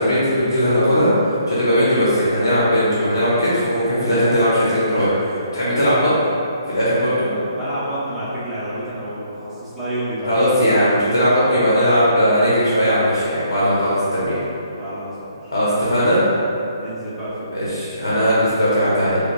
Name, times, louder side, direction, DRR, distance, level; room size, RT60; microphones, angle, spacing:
voice 1, 0.0-6.1 6.7-7.3 10.3-14.4 15.5-16.2 17.5-19.2, equal, 75° left, -9 dB, 0.9 m, -18 dB
voice 2, 7.3-10.8 14.0-14.1 14.8-15.5 16.8-17.6, right 1 dB, ahead, -14 dB, 1.0 m, -29 dB
5.0 x 2.3 x 2.4 m, 2.8 s
figure-of-eight pair, 135°, 2 cm